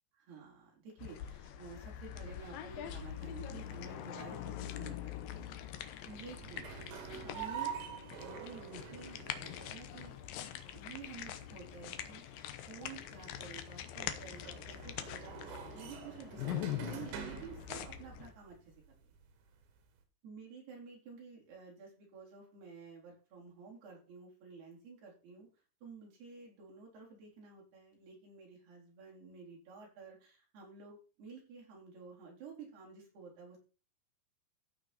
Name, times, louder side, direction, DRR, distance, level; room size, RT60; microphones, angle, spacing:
voice 1, 0.2-5.2 5.5-5.8 6.1-6.6 7.2-7.7 8.1-10.4 10.7-12.2 12.7-18.7 20.2-25.5 25.8-33.6, right 5 dB, 65° right, -2 dB, 6.1 m, -51 dB
sound 1, 1.0-18.3, left 11 dB, 75° left, 2.2 m, -44 dB
sound 2, 2.9-20.0, right 8 dB, 90° right, 4.1 m, -48 dB
15.0 x 5.5 x 4.2 m, 0.35 s
omnidirectional pair, 5.1 m